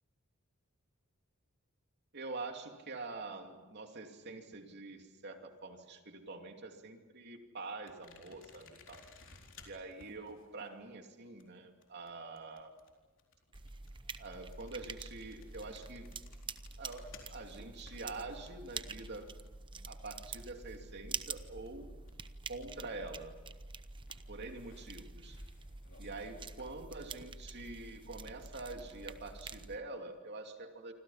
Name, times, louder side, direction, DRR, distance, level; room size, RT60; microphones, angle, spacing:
voice 1, 2.1-9.0 9.7-12.7 14.2-16.1 16.8-19.3 19.9-21.9 22.5-23.3 24.3-25.4 26.0-30.9, right 3 dB, 50° right, 4 dB, 2.7 m, -46 dB
sound 1, 7.9-21.2 21.5-23.3 24.0-26.7, left 4 dB, 60° left, 4.1 m, -61 dB
sound 2, 13.5-29.8, right 4 dB, 25° right, 0.8 m, -47 dB
28.5 x 25.5 x 5.8 m, 1.3 s
head